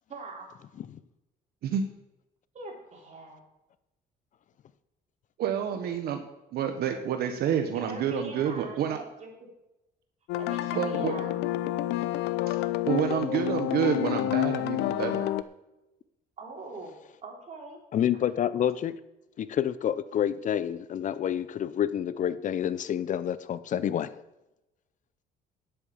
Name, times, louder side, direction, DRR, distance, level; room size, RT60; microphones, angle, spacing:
voice 1, 0.1-0.5 2.5-3.4 7.7-9.5 10.4-11.5 16.4-16.9 17.2-17.8, right 3 dB, 45° right, 0 dB, 4.0 m, -42 dB
voice 2, 5.4-6.2 6.5-9.0 10.7-11.1 12.5-12.6 12.8-15.3, right 9 dB, 70° right, 6 dB, 1.2 m, -28 dB
sound 1, 10.3-15.4, left 15 dB, 85° left, 0.6 m, -29 dB
voice 3, 17.9-18.9 19.4-24.2, left 10 dB, 50° left, 15 dB, 0.6 m, -28 dB
10.5 x 8.5 x 7.0 m, 0.93 s
cardioid pair, 110°, 17 cm